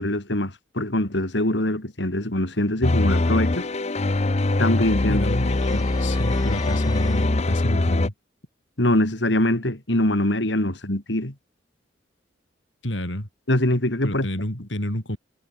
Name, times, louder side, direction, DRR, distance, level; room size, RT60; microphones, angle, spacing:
voice 1, 0.0-3.7 4.6-5.3 8.8-11.3 13.5-14.3, left 1 dB, 70° left, 3.5 m, -23 dB
sound 1, 2.8-8.1, left 2 dB, 35° left, 0.8 m, -22 dB
voice 2, 5.1-8.1 12.8-13.3 14.0-15.2, left 1 dB, 90° left, 7.1 m, -29 dB
sound 2, 5.1-7.3, left 3 dB, 20° left, 6.8 m, -41 dB
head